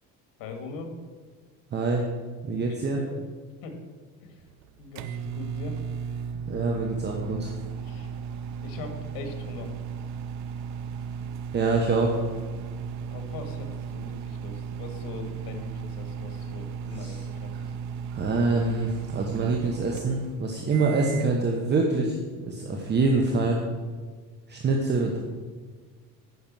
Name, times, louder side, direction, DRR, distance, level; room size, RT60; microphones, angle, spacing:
voice 1, 0.4-0.9 2.5-3.2 3.6-3.8 4.2-4.4 4.8-5.8 7.8-8.1 8.6-9.8 13.1-17.8, left 4 dB, 80° left, 5 dB, 2.0 m, -41 dB
voice 2, 1.7-2.1 2.4-3.0 6.3-7.5 11.5-12.2 17.0-17.2 18.1-23.6 24.5-25.2, right 3 dB, 30° right, 1 dB, 1.1 m, -25 dB
sound 1, 4.4-21.3, right 6 dB, 60° right, 0.7 m, -35 dB
9.5 x 6.1 x 7.4 m, 1.5 s
cardioid pair, 135°, 33 cm